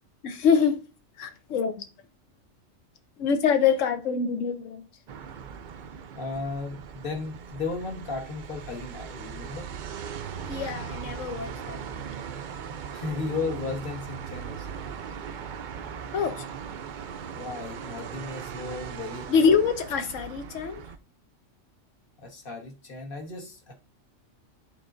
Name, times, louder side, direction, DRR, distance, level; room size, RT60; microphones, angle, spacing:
voice 1, 0.2-0.8 1.2-1.8 3.2-4.8 10.4-12.0 16.1-16.5 19.3-20.8, left 6 dB, 80° left, 1.2 m, -25 dB
sound 1, 5.1-21.0, right 7 dB, 60° right, 0.5 m, -39 dB
voice 2, 6.1-9.7 12.9-14.8 17.3-19.3 22.2-23.7, left 4 dB, 45° left, 1.4 m, -35 dB
10.5 x 3.9 x 2.5 m
omnidirectional pair, 1.3 m